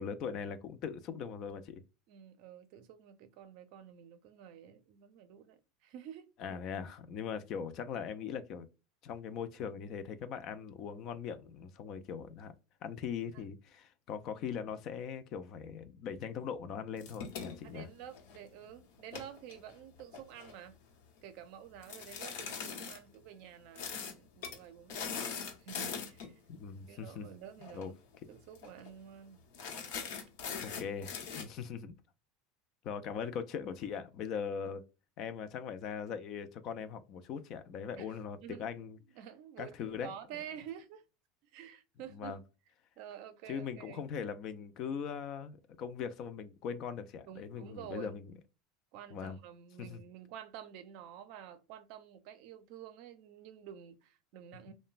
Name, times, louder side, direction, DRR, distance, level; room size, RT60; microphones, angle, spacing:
voice 1, 0.0-1.8 6.4-8.7 9.0-12.5 12.8-17.9 26.5-27.3 27.7-27.9 30.6-31.9 32.8-34.8 35.2-39.0 39.6-40.1 42.1-42.4 43.5-48.3 49.1-49.4 49.8-50.0, left 7 dB, 45° left, 0.4 m, -40 dB
voice 2, 2.1-6.6 13.3-13.4 17.6-20.8 21.2-26.4 26.9-27.9 28.3-29.4 38.0-38.2 38.4-41.0 41.4-42.4 43.0-44.1 47.3-48.2 48.9-54.7, right 9 dB, 55° right, 0.5 m, -50 dB
sound 1, 17.0-18.5 19.0-20.5 21.8-23.0 23.8-24.1 24.4-24.6 24.9-26.3 27.6-27.8 28.1-28.2 28.6-28.9 29.5-31.4, left 6 dB, 75° left, 0.9 m, -41 dB
3.0 x 2.1 x 2.4 m
supercardioid pair, 150°, 0 cm